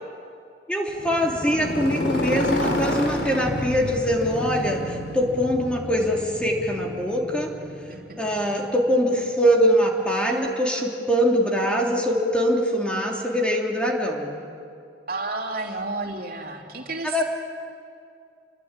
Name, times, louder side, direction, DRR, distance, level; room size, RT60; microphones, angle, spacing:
voice 1, 0.7-7.5 8.2-14.4 17.0-17.2, equal, 5° left, -1 dB, 3.1 m, -23 dB
Motorcycle, 0.9-8.9, left 1 dB, 80° left, 3.6 m, -30 dB
voice 2, 7.9-8.3 15.1-17.2, right 3 dB, 55° right, 0 dB, 3.2 m, -31 dB
28.0 x 23.0 x 9.0 m, 2.4 s
head